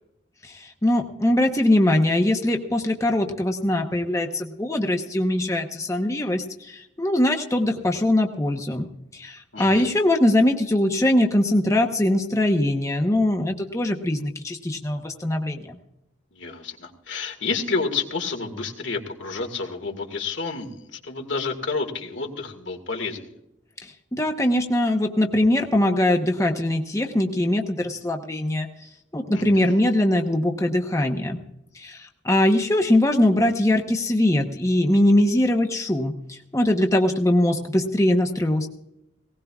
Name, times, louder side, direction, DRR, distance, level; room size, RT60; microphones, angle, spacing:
voice 1, 0.4-8.9 9.1-15.8 23.8-28.7 29.1-31.4 31.7-38.7, left 1 dB, 15° left, 3 dB, 0.9 m, -22 dB
voice 2, 9.5-9.9 16.3-23.3 29.3-29.8, left 4 dB, 80° left, 4 dB, 2.0 m, -30 dB
19.0 x 18.0 x 2.4 m, 0.83 s
head